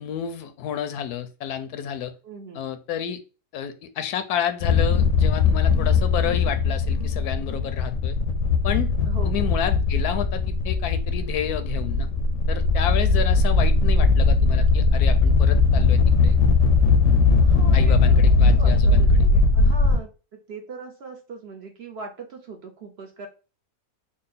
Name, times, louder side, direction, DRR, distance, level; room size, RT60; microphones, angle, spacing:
voice 1, 0.0-2.1 2.5-3.2 3.5-8.2 8.6-8.9 9.2-12.1 12.5-16.4 17.7-19.3, left 9 dB, 85° left, 9 dB, 1.1 m, -30 dB
voice 2, 2.2-2.7 9.1-9.5 17.4-18.2 18.6-23.3, right 4 dB, 55° right, 3 dB, 0.7 m, -40 dB
sound 1, 4.6-20.0, left 4 dB, 65° left, 0.8 m, -19 dB
3.7 x 2.1 x 3.9 m, 0.33 s
omnidirectional pair, 1.6 m